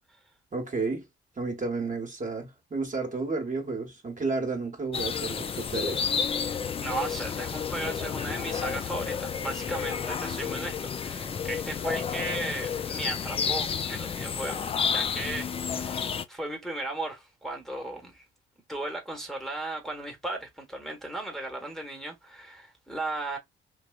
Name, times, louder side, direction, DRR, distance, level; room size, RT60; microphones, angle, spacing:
voice 1, 0.5-1.0 1.4-6.1, right 3 dB, 25° right, 1.1 m, -31 dB
sound 1, 4.9-16.2, left 6 dB, 20° left, 0.3 m, -31 dB
voice 2, 6.8-18.3 18.7-23.4, right 2 dB, ahead, 1.1 m, -36 dB
Male singing, 9.3-12.2 12.9-13.4 14.0-14.3 14.5-15.5, left 2 dB, 85° left, 0.9 m, -51 dB
3.3 x 2.6 x 2.3 m
figure-of-eight pair, 45°, 30 cm